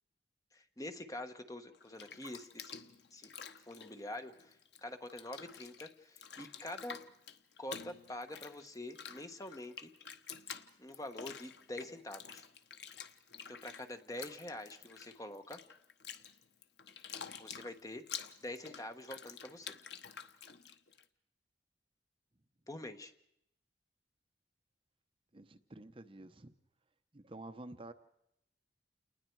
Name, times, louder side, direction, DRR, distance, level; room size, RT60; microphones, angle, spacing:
voice 1, 0.5-2.7 3.1-7.0 7.6-9.9 10.8-12.4 13.5-15.6 17.4-18.0 18.4-19.7 22.7-23.1, left 1 dB, 20° left, 1.2 m, -46 dB
Bathtub (filling or washing), 1.7-4.8 5.1-21.0, left 7 dB, 70° left, 1.1 m, -49 dB
voice 2, 25.3-26.5 27.1-27.9, right 2 dB, 30° right, 0.8 m, -50 dB
29.0 x 20.0 x 4.7 m
head